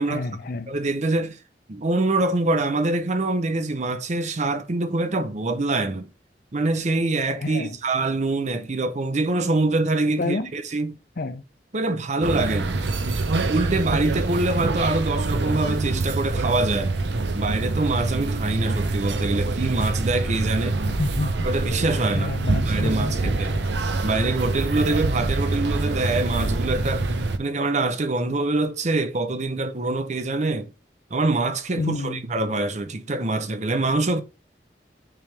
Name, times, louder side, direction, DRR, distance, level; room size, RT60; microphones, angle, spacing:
voice 1, 0.1-0.7 7.4-7.8 10.2-10.5 11.2-11.4 20.9-21.5 22.1-23.7 31.8-32.2, left 2 dB, 55° left, 0.7 m, -29 dB
voice 2, 0.7-1.4 1.7-6.1 6.5-10.9 11.7-12.8 13.5-16.9 17.3-20.8 21.4-22.3 22.7-23.6 24.0-27.0 27.4-30.7 31.1-34.2, right 2 dB, 40° right, 0.7 m, -24 dB
sound 1, 12.2-27.4, right 3 dB, 75° right, 0.7 m, -25 dB
9.0 x 3.5 x 3.4 m
head